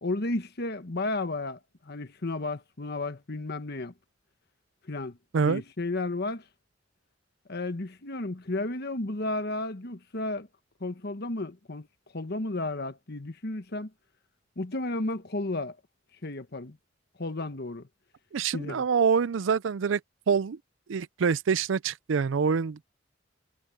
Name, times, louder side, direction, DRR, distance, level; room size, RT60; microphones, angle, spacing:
voice 1, 0.0-3.9 4.9-5.2 5.4-6.4 7.5-10.5 10.8-11.9 12.1-13.9 14.6-15.8 16.2-16.8 17.2-17.9 18.5-18.8, left 2 dB, 55° left, 1.3 m, -33 dB
voice 2, 18.3-20.0 20.3-20.6 20.9-22.9, right 6 dB, 80° right, 0.5 m, -25 dB
head